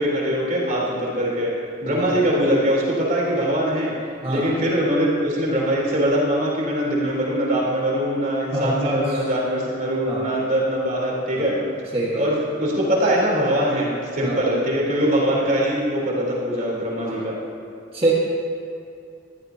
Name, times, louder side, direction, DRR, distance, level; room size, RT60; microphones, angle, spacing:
voice 1, 0.0-1.5 1.8-3.9 4.3-11.6 12.2-17.4, equal, 45° right, -5 dB, 3.8 m, -22 dB
voice 2, 4.2-4.5 8.5-9.2 10.0-10.3 11.3-11.5 11.9-12.3 14.2-14.4 17.0-17.3 17.9-18.1, right 1 dB, 30° right, -6 dB, 1.8 m, -25 dB
21.5 x 14.5 x 2.9 m, 2.5 s
head